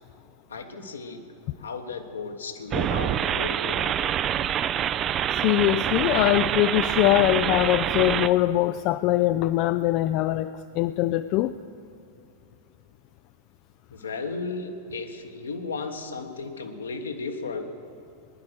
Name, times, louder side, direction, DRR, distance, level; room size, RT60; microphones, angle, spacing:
voice 1, 0.5-1.3 1.6-4.1 13.9-17.7, left 4 dB, 70° left, 5 dB, 1.3 m, -34 dB
sound 1, 2.7-8.3, right 10 dB, 30° right, 0.4 m, -26 dB
voice 2, 5.4-11.5, left 15 dB, 40° left, 12 dB, 0.3 m, -22 dB
19.5 x 10.5 x 6.3 m, 2.5 s
figure-of-eight pair, 90°, 0 cm